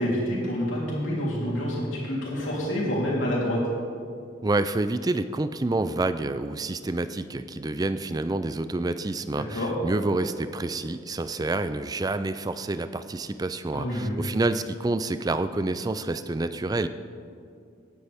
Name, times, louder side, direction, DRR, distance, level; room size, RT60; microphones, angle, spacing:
voice 1, 0.0-3.6 9.4-9.7 13.7-14.3, equal, 70° left, -5 dB, 3.4 m, -27 dB
voice 2, 4.4-16.9, right 2 dB, 20° right, 12 dB, 0.3 m, -28 dB
17.5 x 9.8 x 3.5 m, 2.4 s
head